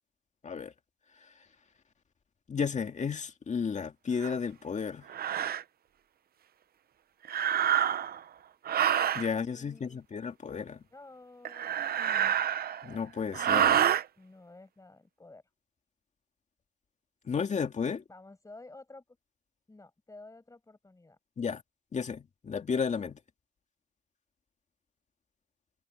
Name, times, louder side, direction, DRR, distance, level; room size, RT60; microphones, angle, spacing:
voice 1, 1.1-1.5 2.5-5.1 9.1-10.8 12.8-13.9 17.2-18.0 21.4-21.6 21.9-23.2, left 6 dB, 40° left, 2.2 m, -33 dB
sound 1, 4.2-4.3 5.1-5.6 7.2-8.2 8.6-9.3 11.4-12.9 13.3-14.0, right 9 dB, 55° right, 0.8 m, -27 dB
voice 2, 9.2-10.0 10.9-11.8 13.6-15.4 18.1-19.2 19.7-21.2, left 2 dB, 15° left, 6.8 m, -52 dB
cardioid pair, 95°, 19 cm